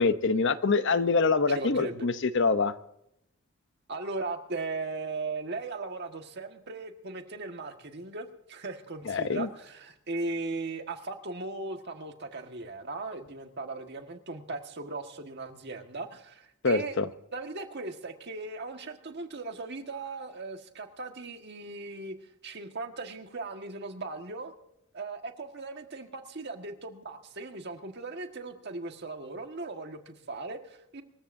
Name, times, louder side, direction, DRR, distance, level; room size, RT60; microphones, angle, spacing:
voice 1, 0.0-2.7 9.1-9.5 16.6-17.1, left 4 dB, 55° left, 12 dB, 0.7 m, -25 dB
voice 2, 1.5-2.1 3.9-17.0 17.3-22.1 22.4-24.5 24.9-31.0, right 3 dB, 50° right, 5 dB, 1.6 m, -38 dB
25.0 x 14.5 x 2.7 m, 0.81 s
head